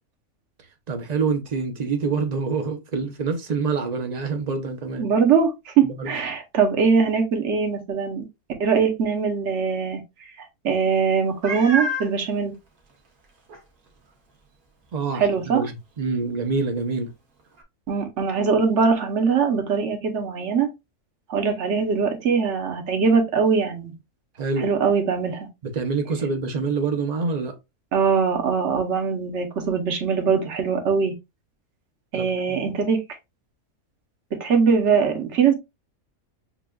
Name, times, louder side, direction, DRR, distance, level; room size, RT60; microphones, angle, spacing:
voice 1, 0.9-5.1 5.8-6.1 14.9-17.1 24.4-24.7 25.6-27.5 32.1-32.7, right 4 dB, 40° right, 0.6 m, -26 dB
voice 2, 5.0-8.2 8.6-10.0 10.6-12.5 15.1-15.6 17.9-20.7 21.3-23.9 24.6-25.5 27.9-31.1 32.1-33.0 34.4-35.5, right 6 dB, 55° right, 1.2 m, -21 dB
Meow, 11.4-12.1 12.9-13.0 13.5-13.6 17.6-17.7, right 1 dB, 85° right, 1.5 m, -27 dB
6.8 x 2.4 x 2.3 m
omnidirectional pair, 1.5 m